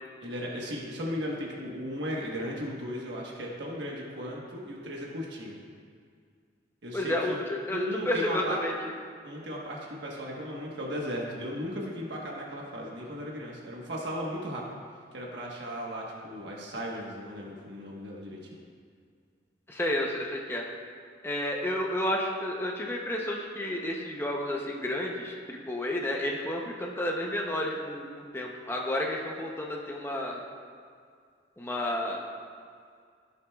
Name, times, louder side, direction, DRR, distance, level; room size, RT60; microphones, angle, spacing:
voice 1, 0.2-5.6 6.8-7.4 7.7-8.6 9.2-14.7 15.1-18.6, equal, 75° right, -3 dB, 1.2 m, -36 dB
voice 2, 6.9-8.9 19.7-20.6 21.2-30.4 31.6-32.2, left 1 dB, 15° left, -1 dB, 0.7 m, -31 dB
15.5 x 6.9 x 2.3 m, 2.1 s
head